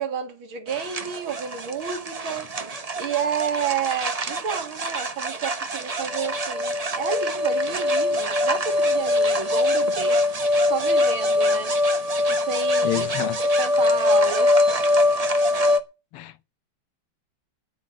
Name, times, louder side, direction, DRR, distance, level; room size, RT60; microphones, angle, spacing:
voice 1, 0.0-2.5 3.0-10.2 10.6-11.7 12.3-13.1 13.6-14.8, right 6 dB, 65° right, 2.8 m, -30 dB
sound 1, 0.7-15.8, left 1 dB, 45° right, 0.4 m, -23 dB
voice 2, 12.8-13.4 16.1-16.4, left 14 dB, 85° left, 1.7 m, -29 dB
9.5 x 8.4 x 8.6 m
omnidirectional pair, 2.4 m